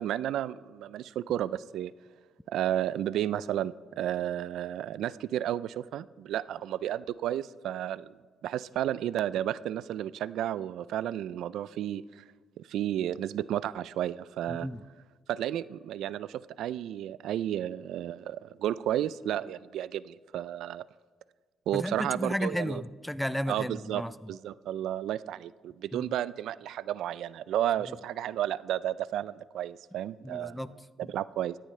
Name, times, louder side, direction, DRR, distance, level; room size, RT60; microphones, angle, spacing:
voice 1, 0.0-1.9 2.5-8.1 8.4-12.2 12.6-14.7 15.3-20.8 21.7-22.8 23.5-24.0 24.3-30.6 31.1-31.6, right 11 dB, 80° right, 18 dB, 0.3 m, -32 dB
voice 2, 14.5-14.8 21.7-24.3 25.9-26.2 30.2-31.1, equal, 5° left, 16 dB, 0.4 m, -34 dB
17.0 x 13.5 x 3.3 m, 1.4 s
cardioid pair, 90°, 0 cm